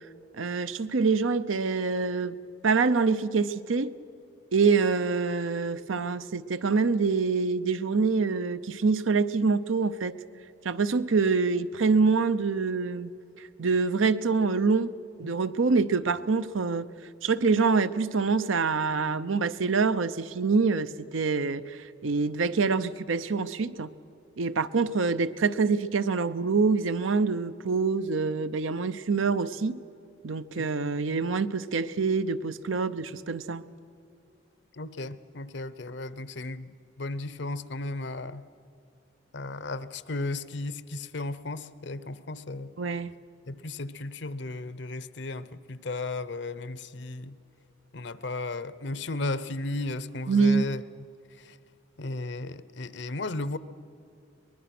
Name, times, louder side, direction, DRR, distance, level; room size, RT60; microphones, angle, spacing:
voice 1, 0.4-2.4 2.6-3.9 4.5-10.1 10.6-13.1 13.6-14.9 15.2-16.9 17.2-23.9 24.4-29.8 30.2-33.6 42.8-43.1 50.3-50.6, right 4 dB, 85° right, 0.7 m, -25 dB
voice 2, 34.7-38.5 39.3-42.8 43.5-47.4 47.9-50.8 51.4-51.6 52.0-53.6, left 2 dB, 65° left, 0.7 m, -35 dB
23.5 x 20.5 x 6.0 m
head